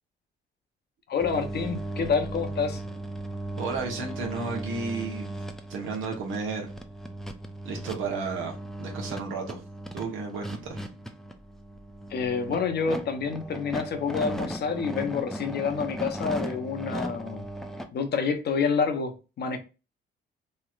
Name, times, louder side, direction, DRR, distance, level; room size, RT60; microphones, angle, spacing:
voice 1, 1.1-2.8 12.1-17.5 17.9-19.6, left 5 dB, 55° left, 0.7 m, -28 dB
sound 1, 1.2-17.9, right 1 dB, ahead, 0.4 m, -37 dB
voice 2, 3.6-5.3 5.7-6.7 7.6-9.6 9.9-10.8, right 4 dB, 85° right, 1.0 m, -33 dB
3.1 x 2.8 x 2.4 m
cardioid pair, 90°, 20 cm